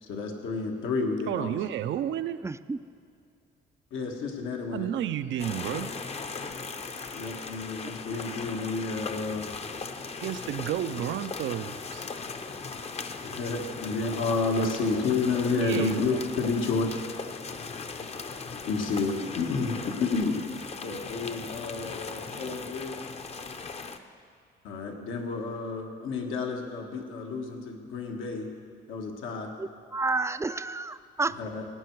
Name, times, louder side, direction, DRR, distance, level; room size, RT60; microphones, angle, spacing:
voice 1, 0.0-1.6 3.9-4.9 7.1-9.5 13.2-16.9 17.9-18.0 18.5-20.4 20.8-23.0 24.6-28.5 28.9-29.5 31.4-31.6, left 4 dB, 80° left, 2 dB, 1.6 m, -30 dB
voice 2, 1.3-2.4 4.7-5.9 10.2-12.0 15.6-16.0, right 11 dB, 70° right, 11 dB, 0.5 m, -31 dB
voice 3, 2.4-2.8 29.6-31.3, right 3 dB, 15° right, 13 dB, 0.4 m, -30 dB
sound 1, 5.4-24.0, left 4 dB, 30° left, 0.7 m, -38 dB
17.5 x 9.4 x 4.6 m, 2.3 s
cardioid pair, 90°, 20 cm